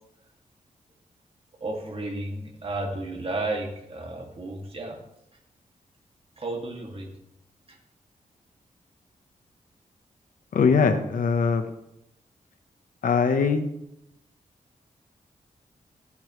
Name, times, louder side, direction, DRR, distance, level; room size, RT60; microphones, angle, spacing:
voice 1, 1.6-5.0 6.4-7.1 7.7-7.8, right 2 dB, 45° right, 0 dB, 2.5 m, -33 dB
voice 2, 10.5-11.7 13.0-13.6, left 5 dB, 85° left, 8 dB, 1.1 m, -21 dB
15.5 x 8.6 x 3.3 m, 0.84 s
wide cardioid pair, 90°, 14 cm